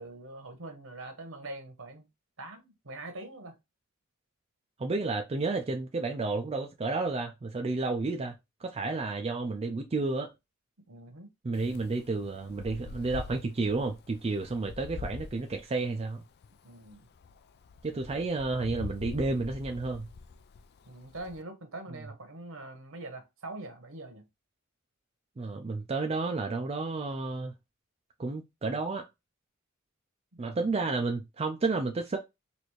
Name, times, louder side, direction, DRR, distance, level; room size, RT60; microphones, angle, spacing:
voice 1, 0.0-2.1 2.4-3.5 10.9-11.3 16.6-17.1 20.9-24.3 30.3-30.8, right 2 dB, 65° right, 1.1 m, -43 dB
voice 2, 4.8-8.3 8.6-10.3 11.4-16.2 17.8-20.1 25.4-27.5 28.2-29.1 30.4-32.2, right 3 dB, 30° right, 0.4 m, -31 dB
Wind, 11.5-21.4, left 4 dB, 50° left, 0.4 m, -45 dB
4.2 x 2.6 x 3.1 m
head